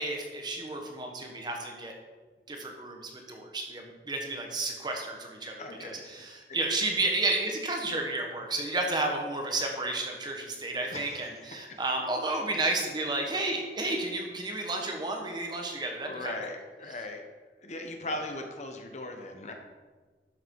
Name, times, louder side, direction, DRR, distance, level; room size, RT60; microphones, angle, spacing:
voice 1, 0.0-1.9 2.5-16.3 18.1-18.2, right 2 dB, 25° right, 2 dB, 1.3 m, -32 dB
voice 2, 5.6-6.1 6.5-6.6 10.9-11.8 16.0-17.2 17.6-19.5, left 2 dB, 40° left, 4 dB, 1.1 m, -39 dB
12.0 x 6.9 x 4.8 m, 1.4 s
head